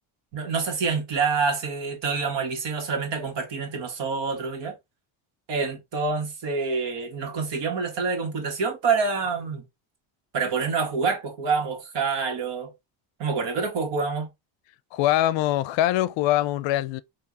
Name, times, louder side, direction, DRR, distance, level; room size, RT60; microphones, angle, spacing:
voice 1, 0.3-4.7 5.5-9.6 10.3-12.7 13.2-14.3, right 5 dB, 60° right, 1.7 m, -27 dB
voice 2, 14.9-17.0, left 14 dB, 70° left, 0.5 m, -23 dB
4.7 x 2.9 x 2.8 m
cardioid pair, 125°, 47 cm